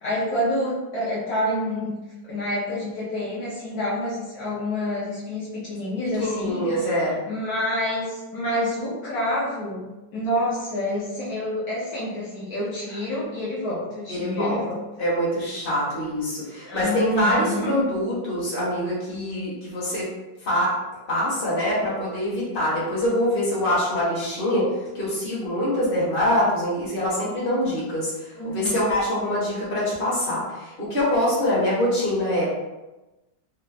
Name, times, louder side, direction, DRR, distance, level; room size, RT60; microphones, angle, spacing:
voice 1, 0.0-2.0 2.3-6.6 7.3-14.8 16.7-17.9 28.4-29.0, left 1 dB, 65° left, -8 dB, 1.2 m, -28 dB
voice 2, 6.2-7.2 14.1-14.6 15.0-20.1 20.4-20.7 21.1-32.4, left 1 dB, 35° left, -7 dB, 1.3 m, -24 dB
3.7 x 2.0 x 3.3 m, 1.1 s
omnidirectional pair, 1.9 m